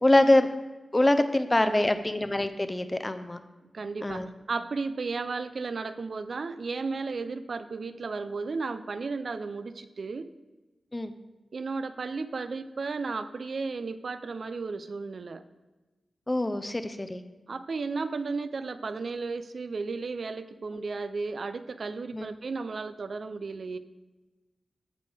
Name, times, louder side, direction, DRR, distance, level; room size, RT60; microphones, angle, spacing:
voice 1, 0.0-0.5 0.9-3.4 4.0-4.3 10.9-11.1 16.3-17.2 20.7-20.9 22.1-22.3, left 1 dB, 20° left, 9 dB, 0.6 m, -24 dB
voice 2, 1.6-1.9 3.7-10.3 11.5-15.4 17.5-23.8, right 4 dB, 70° right, 12 dB, 0.5 m, -34 dB
14.0 x 5.2 x 3.5 m, 1.1 s
wide cardioid pair, 90°, 0 cm